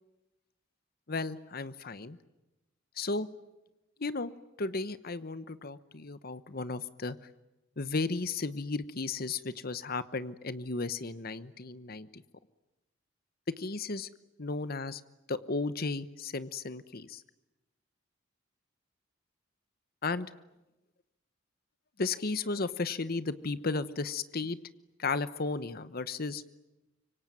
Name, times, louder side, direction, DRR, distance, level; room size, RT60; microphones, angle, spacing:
voice 1, 1.1-2.2 3.0-3.3 4.0-4.3 4.6-7.2 7.8-12.2 13.5-14.1 14.4-15.0 15.3-17.2 20.0-20.3 22.0-24.6 25.0-26.4, left 3 dB, 50° left, 14 dB, 1.0 m, -34 dB
26.0 x 24.5 x 9.3 m, 0.98 s
head